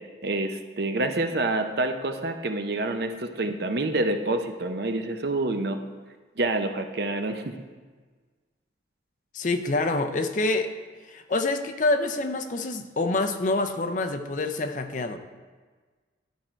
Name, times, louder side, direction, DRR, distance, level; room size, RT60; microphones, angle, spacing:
voice 1, 0.2-5.8 6.4-7.6, right 2 dB, 55° right, 7 dB, 0.6 m, -27 dB
voice 2, 9.3-10.7 11.1-15.2, left 2 dB, 40° left, 7 dB, 0.5 m, -26 dB
12.0 x 4.4 x 4.4 m, 1.4 s
head